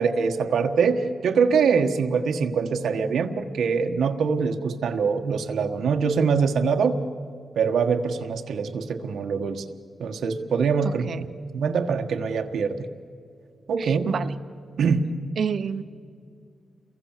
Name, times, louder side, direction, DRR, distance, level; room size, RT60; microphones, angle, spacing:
voice 1, 0.0-6.9 7.5-9.6 10.0-11.0 11.5-12.9 13.7-14.1 14.8-15.0, right 5 dB, 85° right, 4 dB, 1.4 m, -23 dB
voice 2, 10.8-11.3 13.8-14.4 15.4-15.8, right 6 dB, 60° right, 11 dB, 1.0 m, -29 dB
29.0 x 23.0 x 7.4 m, 2.3 s
wide cardioid pair, 145°, 0 cm